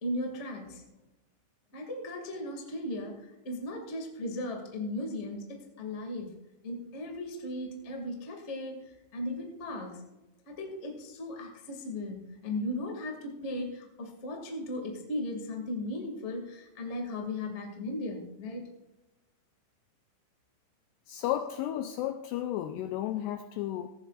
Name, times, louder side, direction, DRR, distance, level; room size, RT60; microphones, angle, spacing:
voice 1, 0.0-0.8 1.7-6.4 6.6-8.7 9.1-10.0 10.4-18.7, left 1 dB, 60° left, 1 dB, 0.7 m, -37 dB
voice 2, 21.1-23.9, left 12 dB, 90° left, 8 dB, 2.4 m, -33 dB
17.0 x 15.0 x 2.4 m, 1.0 s
omnidirectional pair, 5.4 m